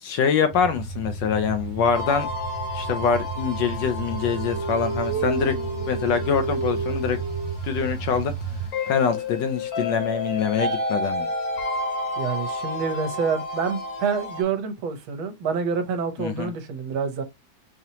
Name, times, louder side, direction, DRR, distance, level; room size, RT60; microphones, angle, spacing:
voice 1, 0.0-2.3 2.7-5.6 5.9-7.2 7.6-8.3 8.9-11.3 16.2-16.5, left 6 dB, 75° left, 1.1 m, -24 dB
sound 1, 0.5-8.7, right 4 dB, 90° right, 1.5 m, -33 dB
sound 2, 1.9-14.4, left 2 dB, 50° left, 1.4 m, -31 dB
sound 3, 3.6-7.6, right 4 dB, 45° right, 0.8 m, -30 dB
voice 2, 12.2-17.2, right 5 dB, 75° right, 1.6 m, -27 dB
4.9 x 2.8 x 2.8 m
omnidirectional pair, 2.3 m